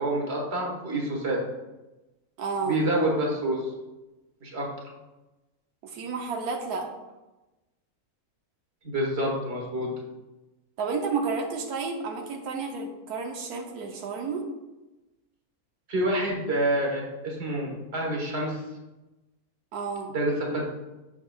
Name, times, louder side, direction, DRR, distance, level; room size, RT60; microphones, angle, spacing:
voice 1, 0.0-1.4 2.7-3.7 4.4-4.7 8.8-9.9 15.9-18.6 20.1-20.6, right 1 dB, 45° right, -1 dB, 1.5 m, -27 dB
voice 2, 2.4-2.8 5.8-6.9 10.8-14.5 19.7-20.1, right 4 dB, 90° right, 2 dB, 1.3 m, -31 dB
6.9 x 6.4 x 2.3 m, 1.0 s
omnidirectional pair, 1.6 m